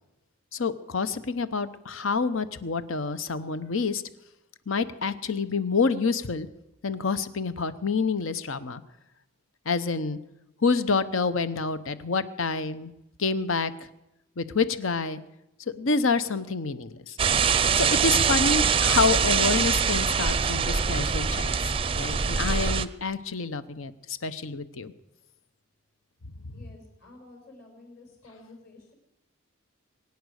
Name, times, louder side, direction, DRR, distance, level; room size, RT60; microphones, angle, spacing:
voice 1, 0.5-4.0 4.7-6.5 6.8-8.8 9.7-10.2 10.6-12.9 13.2-13.7 14.4-15.2 15.8-17.2 17.7-24.9, left 4 dB, 80° left, 13 dB, 0.9 m, -27 dB
sound 1, 17.2-22.9, right 6 dB, 25° right, 0.5 m, -23 dB
voice 2, 26.5-28.9, left 2 dB, 50° left, 2 dB, 5.3 m, -51 dB
22.5 x 9.5 x 6.5 m, 0.92 s
head